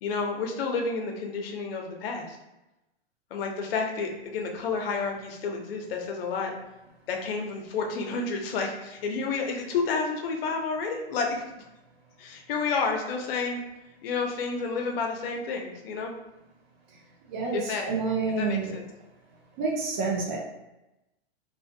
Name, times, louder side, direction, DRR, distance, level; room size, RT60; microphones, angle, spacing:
voice 1, 0.0-2.4 3.3-6.5 7.1-11.4 12.2-13.6 14.0-16.1 17.5-17.9 18.4-18.8, left 4 dB, 60° left, 2 dB, 0.7 m, -30 dB
voice 2, 17.9-18.7 19.6-20.4, right 4 dB, 50° right, -1 dB, 0.5 m, -28 dB
2.4 x 2.4 x 2.6 m, 0.98 s
hypercardioid pair, 135°, 32 cm